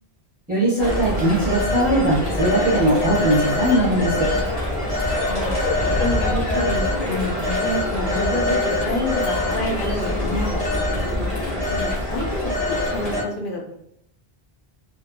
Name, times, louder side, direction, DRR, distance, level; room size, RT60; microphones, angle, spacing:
voice 1, 0.5-4.3, right 1 dB, 10° right, -8 dB, 0.6 m, -20 dB
Telephone, 0.8-13.2, left 1 dB, 40° left, 1.0 m, -24 dB
voice 2, 5.3-5.7 6.0-10.6 11.1-11.3 11.7-13.8, left 1 dB, 65° left, 1 dB, 0.7 m, -28 dB
2.7 x 2.4 x 2.2 m, 0.76 s
omnidirectional pair, 1.0 m